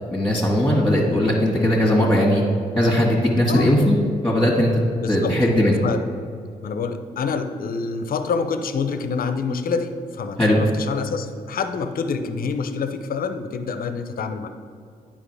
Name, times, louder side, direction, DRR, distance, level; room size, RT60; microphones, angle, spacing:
voice 1, 0.1-2.4 2.8-4.0 4.2-4.8 5.1-5.7 10.4-10.6, left 1 dB, 5° left, -6 dB, 1.8 m, -18 dB
voice 2, 3.5-4.1 5.0-5.4 5.8-6.0 6.6-14.5, left 5 dB, 55° left, 9 dB, 0.6 m, -27 dB
9.5 x 5.1 x 3.4 m, 2.3 s
hypercardioid pair, 45°, 17 cm